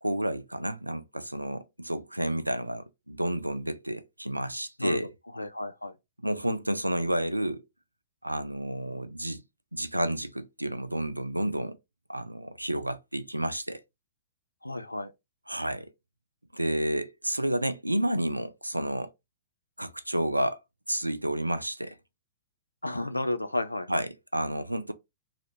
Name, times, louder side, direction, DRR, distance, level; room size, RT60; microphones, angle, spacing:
voice 1, 0.0-5.1 6.2-7.6 8.2-9.4 9.7-11.8 12.1-13.8 15.5-15.9 16.5-19.1 19.8-20.6 20.9-22.0 23.9-24.9, right 1 dB, 85° right, 0.3 m, -30 dB
voice 2, 4.8-6.0 14.6-15.1 22.8-24.0, left 1 dB, 85° left, 0.3 m, -32 dB
2.9 x 2.5 x 3.1 m
figure-of-eight pair, 105°, 0 cm